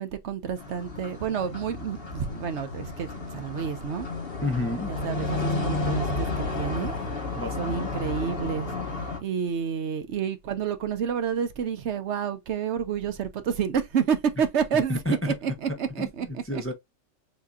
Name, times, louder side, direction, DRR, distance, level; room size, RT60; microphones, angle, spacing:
voice 1, 0.0-4.1 4.9-6.9 7.6-8.7 9.2-16.4, right 7 dB, 70° right, 1.0 m, -29 dB
sound 1, 0.6-9.2, left 2 dB, 50° left, 1.4 m, -32 dB
voice 2, 4.4-4.9 7.4-7.9 14.7-15.4 16.0-16.7, left 2 dB, 15° left, 0.6 m, -30 dB
6.6 x 2.8 x 2.4 m
omnidirectional pair, 1.3 m